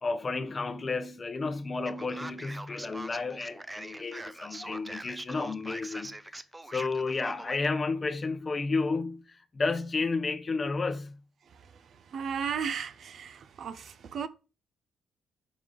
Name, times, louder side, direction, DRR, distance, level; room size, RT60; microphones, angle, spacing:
voice 1, 0.0-6.4 6.7-11.2, left 3 dB, 30° left, 0.7 m, -32 dB
Male speech man speaking, 1.8-7.7, right 1 dB, 15° right, 0.5 m, -42 dB
voice 2, 11.5-14.3, right 7 dB, 60° right, 0.6 m, -36 dB
5.2 x 4.8 x 3.8 m
cardioid pair, 90°, 0 cm